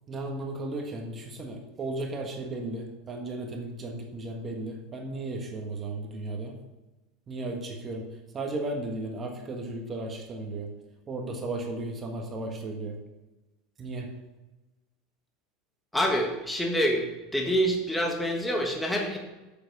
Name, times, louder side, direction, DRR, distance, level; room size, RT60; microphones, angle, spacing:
voice 1, 0.1-6.5 7.3-8.1 8.3-10.7 11.1-13.0 13.8-14.1, right 2 dB, 25° right, 2 dB, 1.5 m, -35 dB
voice 2, 15.9-17.1 17.3-19.2, equal, 5° left, 1 dB, 1.4 m, -26 dB
7.7 x 7.0 x 6.0 m, 1.1 s
supercardioid pair, 135°, 0 cm